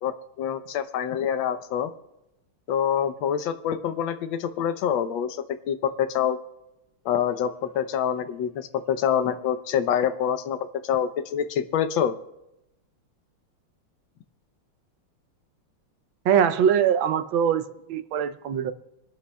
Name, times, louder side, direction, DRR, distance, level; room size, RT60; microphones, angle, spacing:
voice 1, 0.0-1.9 2.7-6.4 7.0-12.1, left 8 dB, 70° left, 1.5 m, -26 dB
voice 2, 16.2-18.7, right 8 dB, 75° right, 1.4 m, -22 dB
25.5 x 12.5 x 2.3 m
omnidirectional pair, 2.3 m